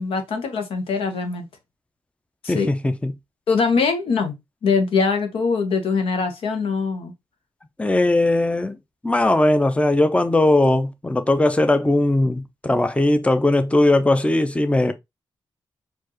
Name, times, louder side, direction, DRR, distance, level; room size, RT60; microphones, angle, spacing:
voice 1, 0.0-1.5 2.4-2.7 3.5-4.3 4.6-7.1, left 5 dB, 80° left, 1.0 m, -22 dB
voice 2, 2.5-3.1 7.8-8.8 9.0-14.9, left 2 dB, 15° left, 0.6 m, -19 dB
4.4 x 2.6 x 3.0 m
supercardioid pair, 45°, 9 cm